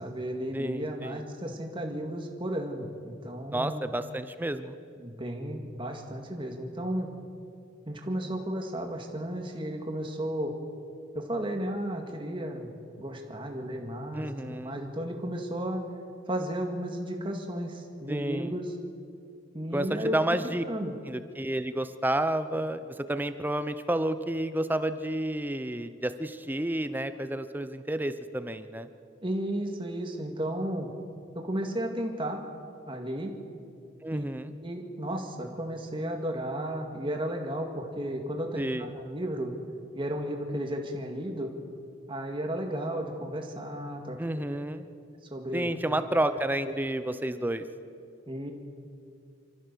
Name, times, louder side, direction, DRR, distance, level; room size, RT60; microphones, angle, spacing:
voice 1, 0.0-3.9 5.0-7.1 7.9-10.5 11.1-15.8 16.3-18.6 19.5-20.2 20.4-20.9 29.2-30.9 31.3-32.4 32.9-33.3 34.1-34.2 34.6-39.5 39.9-41.5 42.1-44.2 44.5-44.6 45.3-45.7 46.6-46.7 48.3-48.5, right 1 dB, 25° right, 2 dB, 2.1 m, -34 dB
voice 2, 0.5-1.2 3.5-4.8 14.1-14.8 18.1-18.5 19.7-20.6 21.1-28.9 34.0-34.5 38.5-38.9 44.2-44.9 45.5-47.6, right 1 dB, 10° right, 11 dB, 0.6 m, -30 dB
27.0 x 14.0 x 6.9 m, 2.4 s
head